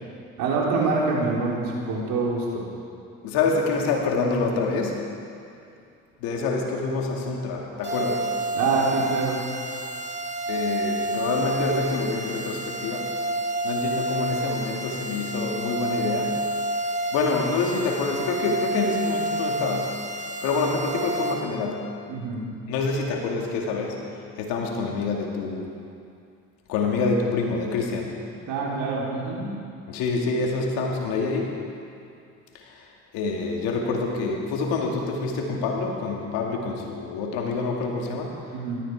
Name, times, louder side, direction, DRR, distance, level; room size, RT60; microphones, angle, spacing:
voice 1, 0.4-2.6 8.5-9.4 22.1-22.4 28.3-29.4 38.5-38.8, right 4 dB, 70° right, -3 dB, 3.9 m, -25 dB
voice 2, 3.2-5.0 6.2-8.3 10.5-13.1 13.6-16.4 17.1-19.9 20.4-21.9 22.7-24.0 24.4-25.7 26.7-28.1 29.9-31.6 32.6-32.8 33.1-38.4, left 3 dB, 80° left, 0 dB, 2.5 m, -26 dB
sound 1, 7.8-21.3, right 1 dB, 30° right, 4.1 m, -29 dB
18.0 x 13.5 x 4.8 m, 2.5 s
supercardioid pair, 70°, 35 cm